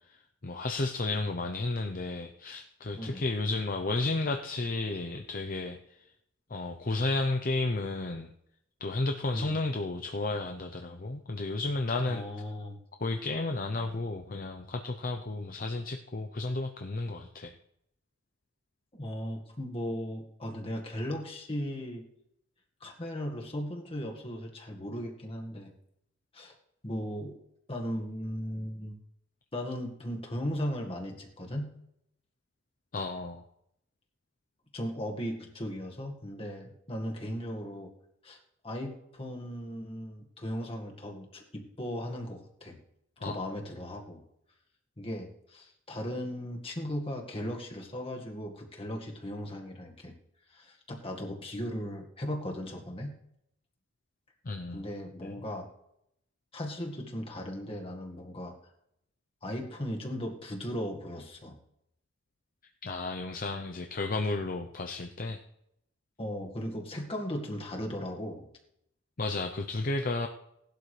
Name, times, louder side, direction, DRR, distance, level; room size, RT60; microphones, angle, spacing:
voice 1, 0.1-5.8 6.5-8.3 8.8-12.2 13.0-17.5 32.9-33.4 43.2-43.5 54.4-54.8 55.2-55.3 62.8-65.4 69.2-70.3, left 2 dB, 45° left, 5 dB, 0.7 m, -32 dB
voice 2, 3.0-3.3 9.3-9.6 12.0-12.8 18.9-22.0 22.8-25.7 26.3-26.5 26.8-27.4 27.7-29.0 29.5-31.7 34.7-37.9 38.2-38.4 38.6-42.8 43.2-44.2 45.0-50.1 50.5-53.1 54.7-55.7 56.5-58.5 59.4-61.6 66.2-68.5, equal, 30° left, 1 dB, 1.8 m, -37 dB
18.0 x 12.0 x 3.3 m, 0.78 s
head